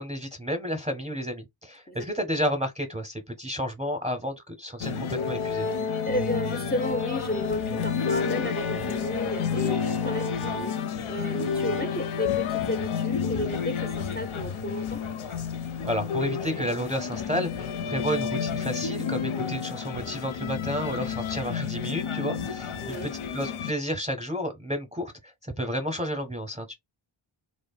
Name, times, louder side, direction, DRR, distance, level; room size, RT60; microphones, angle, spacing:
voice 1, 0.0-5.7 15.8-25.1 25.4-26.7, equal, 15° right, 0.6 m, -31 dB
voice 2, 1.9-2.3 6.1-15.0 19.2-19.5 22.8-23.1, left 1 dB, 20° left, 0.3 m, -33 dB
sound 1, 4.8-23.7, left 6 dB, 75° left, 0.6 m, -30 dB
3.2 x 2.0 x 2.3 m
wide cardioid pair, 105°, 50 cm